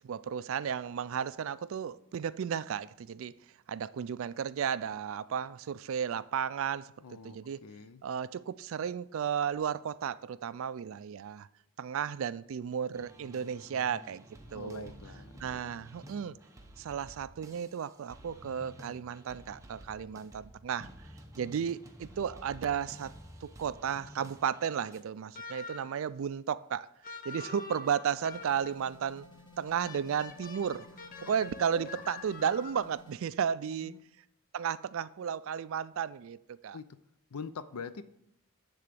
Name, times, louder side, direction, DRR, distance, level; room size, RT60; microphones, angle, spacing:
voice 1, 0.0-3.3 3.7-7.6 8.0-11.5 11.8-14.2 14.5-14.9 15.4-16.4 16.8-20.9 21.4-23.1 23.4-26.9 27.3-29.3 29.6-30.9 31.2-34.0 34.5-36.8, right 7 dB, 60° right, 0.3 m, -34 dB
voice 2, 7.0-8.0 14.5-15.8 31.8-31.9 33.8-34.0 36.7-36.9 37.3-38.0, left 5 dB, 85° left, 0.5 m, -44 dB
sound 1, 12.9-25.0, right 1 dB, 15° right, 0.8 m, -52 dB
sound 2, 25.3-26.0 27.0-28.9 29.8-33.0, left 4 dB, 40° left, 0.7 m, -46 dB
sound 3, 28.3-33.2, left 2 dB, 20° left, 1.5 m, -56 dB
9.9 x 3.8 x 6.8 m
head